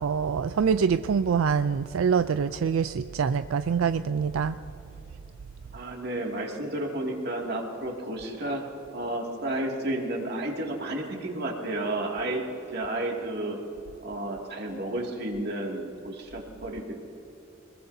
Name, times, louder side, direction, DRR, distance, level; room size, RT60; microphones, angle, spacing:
voice 1, 0.0-4.6, right 6 dB, 80° right, 11 dB, 0.4 m, -25 dB
voice 2, 5.7-8.6 8.9-12.4 12.7-13.6 14.0-17.0, right 1 dB, 50° right, 0 dB, 2.3 m, -32 dB
24.5 x 21.5 x 2.7 m, 3.0 s
head